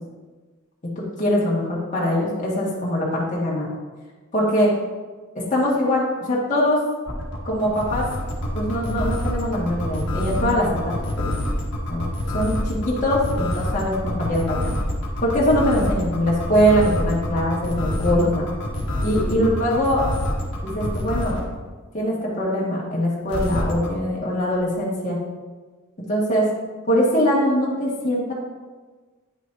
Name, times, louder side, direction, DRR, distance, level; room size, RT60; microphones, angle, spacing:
voice 1, 1.0-3.7 4.3-4.7 5.4-6.8 7.4-8.1 8.5-11.3 11.9-12.1 12.3-14.7 15.2-18.4 19.0-20.1 20.6-21.4 21.9-25.2 26.0-26.5 26.9-28.3, equal, 40° left, -6 dB, 1.7 m, -22 dB
sound 1, 7.1-21.5 23.3-23.9, left 1 dB, 60° left, 1.6 m, -26 dB
9.4 x 6.4 x 2.7 m, 1.3 s
head